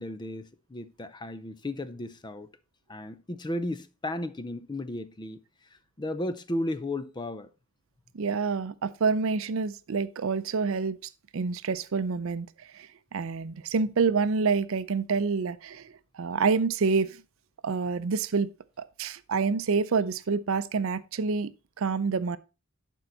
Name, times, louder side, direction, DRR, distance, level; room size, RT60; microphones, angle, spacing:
voice 1, 0.0-2.5 2.9-5.4 6.0-7.5, left 1 dB, 20° left, 0.5 m, -34 dB
voice 2, 8.1-11.0 11.3-12.5 12.7-17.2 17.6-18.5 19.0-21.5 21.8-22.4, right 5 dB, 65° right, 0.5 m, -27 dB
11.0 x 4.5 x 3.9 m
head